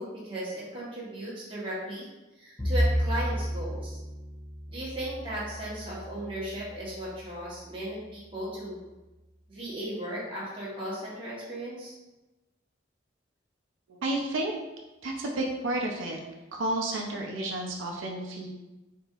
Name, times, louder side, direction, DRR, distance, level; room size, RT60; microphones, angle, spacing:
voice 1, 0.0-2.1 2.4-4.0 4.7-8.9 9.5-11.9, right 1 dB, 25° right, -7 dB, 1.0 m, -36 dB
Bowed string instrument, 2.6-7.0, equal, 10° left, 0.5 m, -31 dB
voice 2, 13.9-14.5 15.0-16.2 16.5-18.5, right 1 dB, 85° right, 0 dB, 0.5 m, -31 dB
4.0 x 2.7 x 2.4 m, 1.1 s
head